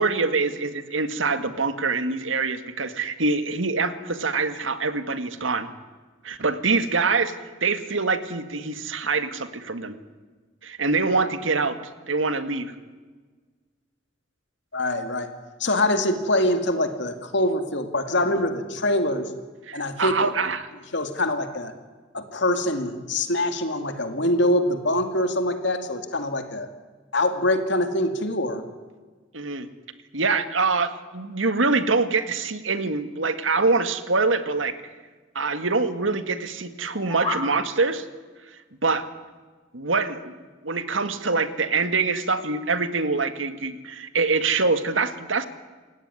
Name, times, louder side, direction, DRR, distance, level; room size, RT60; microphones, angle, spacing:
voice 1, 0.0-5.7 6.2-7.3 7.6-10.0 10.6-11.8 12.1-12.7 19.7-20.7 29.3-29.7 30.1-34.8 35.4-38.1 38.8-39.1 39.7-40.4 40.6-45.5, right 4 dB, 85° right, 10 dB, 1.9 m, -24 dB
voice 2, 14.7-15.3 15.6-19.3 19.7-20.3 20.9-21.7 22.1-26.7 27.1-28.6, left 1 dB, 65° left, 7 dB, 2.3 m, -24 dB
sound 1, 36.8-37.5, left 3 dB, 25° left, 6.7 m, -30 dB
28.5 x 17.0 x 9.8 m, 1.4 s
head